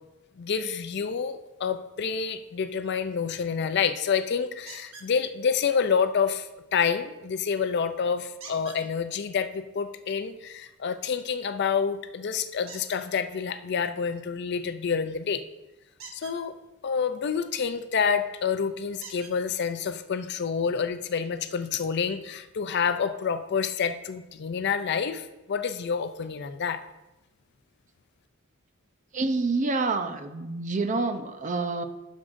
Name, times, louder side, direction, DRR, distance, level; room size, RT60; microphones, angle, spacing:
voice 1, 0.4-15.4 16.1-16.5 16.8-26.8, left 6 dB, 55° left, 10 dB, 0.4 m, -28 dB
sound 1, 4.7-5.1 8.4-8.8 12.7-13.0 15.9-16.4 18.0-18.1 19.0-19.4 20.4-20.5 20.9-21.0, right 4 dB, 85° right, 1.3 m, -44 dB
voice 2, 29.1-31.8, right 3 dB, 35° right, 8 dB, 0.6 m, -27 dB
11.0 x 6.3 x 2.6 m, 0.99 s
head